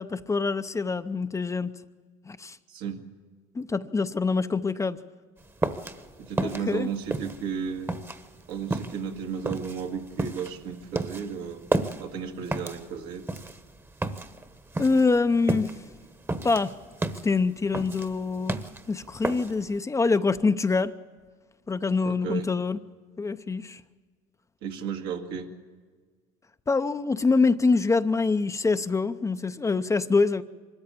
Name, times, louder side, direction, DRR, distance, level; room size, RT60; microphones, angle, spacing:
voice 1, 0.0-1.8 2.3-2.6 3.5-5.0 6.4-6.9 14.8-15.7 16.4-16.7 17.2-18.6 18.9-20.9 21.7-22.8 23.2-23.8 26.7-30.4, left 4 dB, 20° left, 11 dB, 0.6 m, -25 dB
voice 2, 2.7-3.1 6.2-8.0 8.5-11.7 12.0-13.3 22.0-22.5 24.6-25.5, right 7 dB, 80° right, 3 dB, 2.0 m, -34 dB
sound 1, 5.4-19.8, right 2 dB, 15° right, 1.1 m, -32 dB
23.5 x 13.5 x 8.5 m, 1.5 s
supercardioid pair, 95°, 16 cm